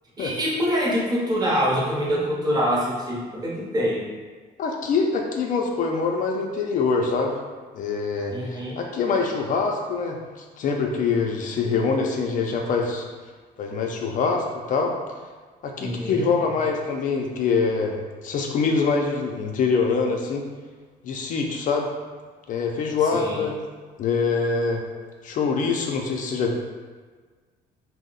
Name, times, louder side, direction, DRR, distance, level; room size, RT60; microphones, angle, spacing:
voice 1, 0.2-4.0 8.3-8.8 15.8-16.3 23.1-23.5, equal, 25° right, -4 dB, 0.8 m, -25 dB
voice 2, 4.6-7.4 7.7-10.2 10.6-13.0 13.6-14.9 15.6-20.5 21.0-21.9 22.5-23.5 24.0-24.8 25.2-26.5, left 4 dB, 50° left, 2 dB, 0.4 m, -24 dB
2.6 x 2.0 x 3.8 m, 1.5 s
cardioid pair, 110°, 17 cm